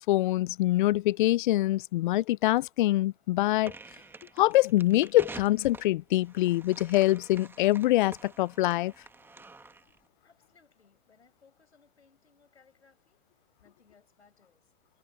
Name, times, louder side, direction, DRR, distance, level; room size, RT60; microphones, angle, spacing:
voice 1, 0.0-3.7 4.4-8.9, left 16 dB, 50° left, 0.4 m, -24 dB
sound 1, 3.6-10.0, right 3 dB, 5° right, 1.4 m, -48 dB
voice 2, 10.2-13.2 13.6-14.7, left 5 dB, 85° left, 6.3 m, -64 dB
hypercardioid pair, 120°, 33 cm